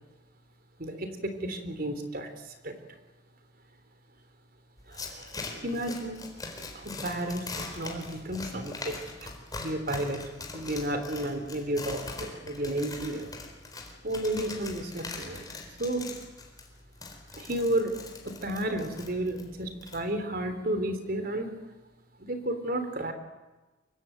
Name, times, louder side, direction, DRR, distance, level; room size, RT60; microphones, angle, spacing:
voice 1, 0.8-2.8 4.9-6.2 6.7-7.5 7.7-10.2 10.5-13.3 14.0-15.4 15.8-16.1 17.3-18.0 18.2-21.5 22.2-23.1, right 1 dB, 50° right, 8 dB, 3.6 m, -32 dB
sound 1, 4.8-20.0, left 3 dB, 20° left, 4.1 m, -42 dB
24.5 x 23.0 x 9.2 m, 1.1 s
head